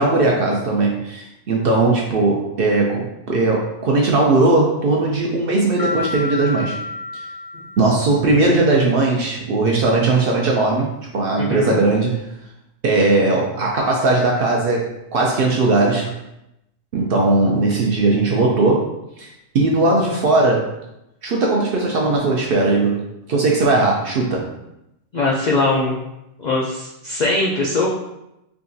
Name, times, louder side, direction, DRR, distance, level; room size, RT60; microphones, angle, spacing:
voice 1, 0.0-6.8 7.8-12.2 12.8-16.2 16.9-18.8 19.2-20.7 21.2-23.0 23.3-24.4, right 2 dB, 60° right, -1 dB, 0.6 m, -18 dB
sound 1, 5.8-8.4, left 2 dB, 15° right, 0.3 m, -30 dB
voice 2, 11.4-11.8 25.1-26.0 26.4-27.9, left 2 dB, 75° left, -3 dB, 0.4 m, -21 dB
3.6 x 2.4 x 2.6 m, 0.87 s
omnidirectional pair, 1.3 m